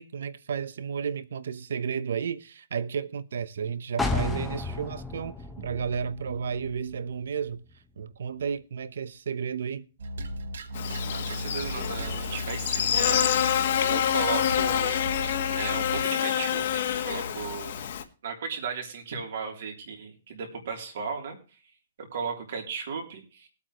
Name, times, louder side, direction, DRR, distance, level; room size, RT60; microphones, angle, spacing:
voice 1, 0.0-7.6 8.0-9.9, right 6 dB, 70° right, 0.9 m, -32 dB
sound 1, 4.0-7.7 8.1-8.2, left 3 dB, 5° left, 1.0 m, -33 dB
sound 2, 10.0-16.1, equal, 90° right, 1.4 m, -36 dB
Buzz, 10.7-18.0, left 9 dB, 50° left, 1.5 m, -27 dB
voice 2, 11.1-13.3 13.8-15.0 15.5-17.8 18.2-21.4 22.0-23.5, right 5 dB, 55° right, 3.3 m, -36 dB
21.0 x 8.4 x 3.1 m
hypercardioid pair, 175°, 0 cm